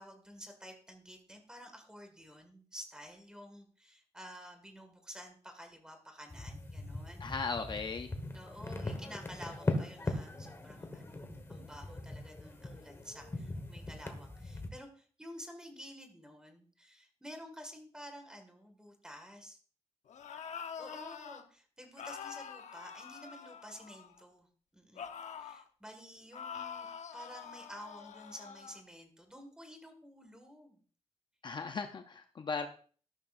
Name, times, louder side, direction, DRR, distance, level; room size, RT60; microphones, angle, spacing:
voice 1, 0.0-7.2 8.3-19.6 20.8-24.5 24.7-26.9 27.1-30.8, equal, 5° right, 5 dB, 1.9 m, -51 dB
sound 1, 6.3-14.7, left 2 dB, 20° left, 1.4 m, -40 dB
voice 2, 7.2-8.1 31.4-32.7, left 4 dB, 40° left, 6 dB, 0.6 m, -37 dB
sound 2, 20.1-21.4 22.0-24.2 25.0-25.7 26.3-28.8, left 7 dB, 80° left, 0.9 m, -45 dB
13.5 x 12.0 x 2.6 m, 0.42 s
wide cardioid pair, 180°, 12 cm